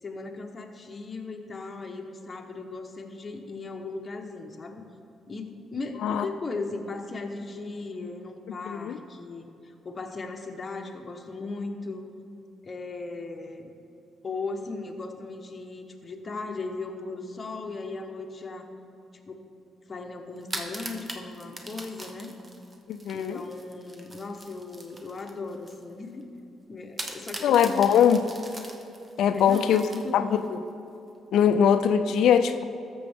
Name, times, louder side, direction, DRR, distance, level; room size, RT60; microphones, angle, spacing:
voice 1, 0.0-4.8 5.3-12.0 12.6-13.7 14.2-18.7 19.1-19.4 19.9-22.4 23.1-26.2 26.7-28.0 29.3-30.4, left 3 dB, 30° left, 3 dB, 1.0 m, -37 dB
voice 2, 8.7-9.0 22.9-23.4 27.4-28.2 29.2-29.8 30.1-30.6 31.3-32.6, left 8 dB, 75° left, 10 dB, 0.4 m, -21 dB
sound 1, 20.4-25.8 26.2-26.3 27.0-30.5, right 1 dB, 25° right, 1.0 m, -41 dB
13.0 x 7.0 x 3.6 m, 2.8 s
cardioid pair, 90°, 0 cm